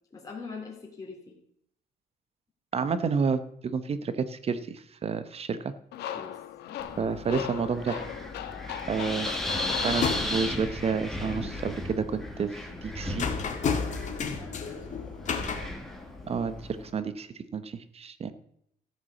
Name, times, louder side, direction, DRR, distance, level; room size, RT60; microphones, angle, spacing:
voice 1, 0.1-1.3 6.1-6.4 14.2-15.1, left 4 dB, 20° left, -2 dB, 3.0 m, -43 dB
voice 2, 2.7-5.7 7.0-8.0 8.9-9.3 9.8-12.6 12.8-13.3 15.6-15.7 16.3-16.5 16.9-18.3, right 5 dB, 35° right, 13 dB, 0.9 m, -30 dB
sound 1, 5.9-10.7, left 10 dB, 80° left, 1.2 m, -38 dB
Wind, 6.8-16.9, left 1 dB, ahead, 2.0 m, -36 dB
sound 2, 7.9-8.2 8.5-9.0 9.3-10.5 11.1-11.9 12.3-16.4, left 6 dB, 45° left, 2.0 m, -33 dB
13.5 x 6.1 x 7.1 m, 0.73 s
cardioid pair, 110°, 17 cm